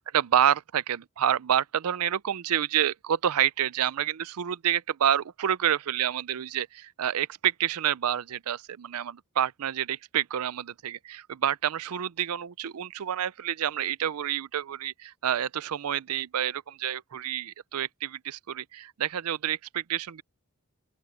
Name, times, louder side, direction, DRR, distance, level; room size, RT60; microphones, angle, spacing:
voice 1, 0.1-20.2, right 10 dB, 80° right, 0.5 m, -28 dB
open air
head